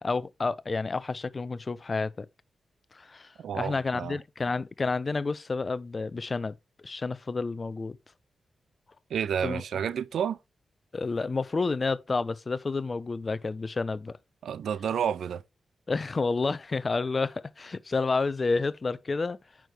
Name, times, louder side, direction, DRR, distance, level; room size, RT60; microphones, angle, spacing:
voice 1, 0.0-2.3 2.9-6.6 6.8-8.0 9.4-9.6 10.9-14.2 15.9-19.4, left 4 dB, 45° left, 0.7 m, -30 dB
voice 2, 3.4-4.2 9.1-10.4 14.4-15.4, right 8 dB, 80° right, 0.6 m, -30 dB
9.1 x 6.1 x 3.4 m
supercardioid pair, 40°, 0 cm